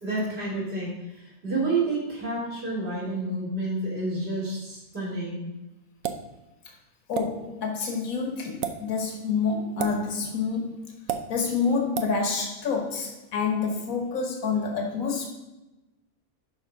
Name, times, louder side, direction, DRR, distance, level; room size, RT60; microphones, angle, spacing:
voice 1, 0.0-5.5, right 2 dB, 45° right, -6 dB, 3.2 m, -29 dB
sound 1, 6.0-6.3 7.1-7.3 8.5-8.7 9.8-10.0 11.1-11.2 11.9-12.1, right 9 dB, 75° right, 1.1 m, -29 dB
voice 2, 7.1-10.8 11.3-15.3, left 5 dB, 80° left, 2 dB, 1.6 m, -28 dB
11.5 x 4.5 x 3.6 m, 1.0 s
omnidirectional pair, 1.5 m